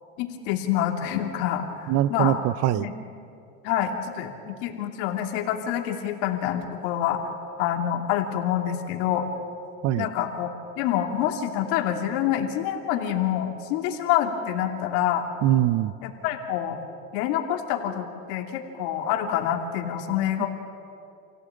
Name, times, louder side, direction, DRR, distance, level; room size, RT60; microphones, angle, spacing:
voice 1, 0.2-2.4 2.7-2.9 3.6-7.2 7.6-9.3 10.0-10.5 10.8-15.3 16.0-16.8 17.1-20.5, left 10 dB, 75° left, 3 dB, 2.8 m, -27 dB
voice 2, 1.9-2.9 9.8-10.1 15.4-15.9 20.4-20.5, right 13 dB, 50° right, 18 dB, 0.7 m, -22 dB
28.5 x 17.0 x 8.7 m, 2.7 s
supercardioid pair, 125°, 32 cm